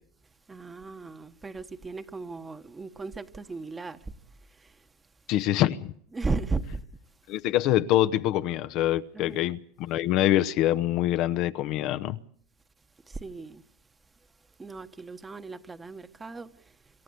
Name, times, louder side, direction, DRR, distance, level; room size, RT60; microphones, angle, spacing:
voice 1, 0.5-4.1 4.5-4.8 6.1-6.8 9.1-9.4 13.1-13.6 14.6-16.7, right 3 dB, 20° right, 1.3 m, -36 dB
voice 2, 5.3-5.9 7.3-12.2, left 13 dB, 55° left, 0.8 m, -25 dB
26.5 x 13.5 x 8.2 m
hypercardioid pair, 90°, 0 cm